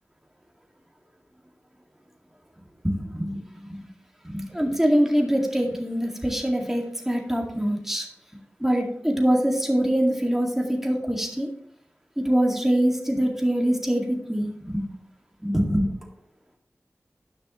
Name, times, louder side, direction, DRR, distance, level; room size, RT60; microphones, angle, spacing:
voice 1, 2.8-3.4 3.7-3.9 4.2-8.1 8.6-11.5 12.2-14.8 15.4-15.9, equal, 5° right, 0 dB, 2.0 m, -24 dB
10.5 x 5.9 x 3.0 m, 0.68 s
cardioid pair, 40°, 5 cm